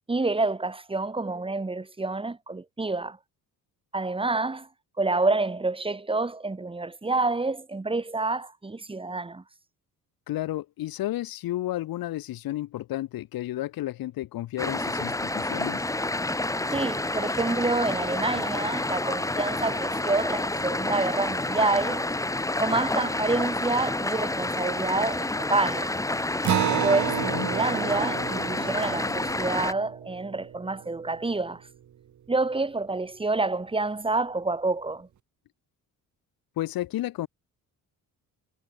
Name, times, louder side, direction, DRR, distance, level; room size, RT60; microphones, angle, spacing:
voice 1, 0.1-3.2 3.9-4.7 5.0-9.4 16.7-22.1 22.6-25.9 26.8-31.6 32.3-35.1, right 3 dB, 15° right, 6.2 m, -28 dB
voice 2, 10.3-15.8 27.2-27.5 36.6-37.3, left 15 dB, 85° left, 2.1 m, -32 dB
sound 1, 14.6-29.7, left 2 dB, 10° left, 3.4 m, -29 dB
Acoustic guitar, 26.4-31.3, right 10 dB, 55° right, 5.6 m, -31 dB
cardioid pair, 145°, 35 cm